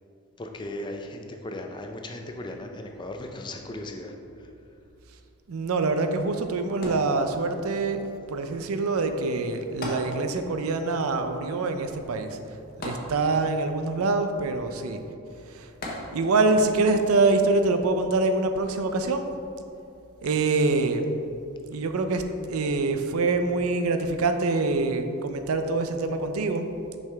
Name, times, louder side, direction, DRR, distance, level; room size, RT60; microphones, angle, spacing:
voice 1, 0.4-4.1, left 1 dB, 20° left, 3 dB, 0.4 m, -37 dB
voice 2, 5.5-8.0 8.3-12.4 12.8-15.0 15.5-15.7 16.1-19.3 20.2-21.1 21.7-26.7, right 3 dB, 80° right, 7 dB, 0.5 m, -25 dB
sound 1, 6.8-7.7 9.8-10.7 11.0-11.1 12.8-13.7 15.8-16.5 17.2-17.3, left 1 dB, 40° left, 1.0 m, -36 dB
6.0 x 5.6 x 3.4 m, 2.7 s
head